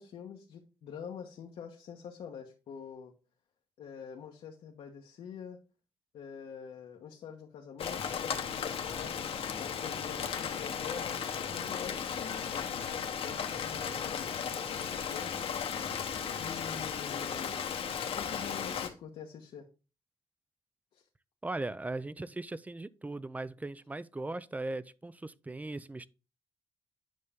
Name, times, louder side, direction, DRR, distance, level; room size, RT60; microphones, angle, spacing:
voice 1, 0.0-3.1 3.8-5.6 6.1-9.3 9.6-11.2 11.5-12.6 13.1-15.6 16.3-17.6 18.0-19.7 20.9-21.1, left 7 dB, 85° left, 1.2 m, -46 dB
Rain, 7.8-18.9, left 7 dB, 70° left, 1.1 m, -35 dB
voice 2, 21.4-26.1, right 2 dB, 15° right, 0.5 m, -38 dB
9.4 x 5.5 x 3.6 m
cardioid pair, 100°, 10 cm